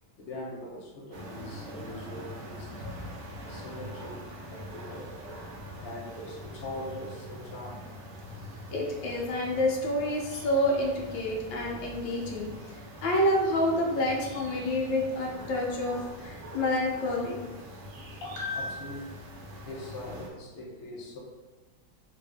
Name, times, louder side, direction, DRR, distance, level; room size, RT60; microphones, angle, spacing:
voice 1, 0.2-2.7 3.4-4.2 4.5-5.1 5.5-7.9 18.2-19.2 19.7-21.2, left 2 dB, 55° left, -3 dB, 0.6 m, -40 dB
sound 1, 1.1-20.3, equal, 65° right, 1.0 m, -44 dB
voice 2, 8.7-12.5 13.0-17.4, left 1 dB, 75° left, -2 dB, 1.5 m, -28 dB
3.7 x 2.5 x 3.4 m, 1.2 s
omnidirectional pair, 2.1 m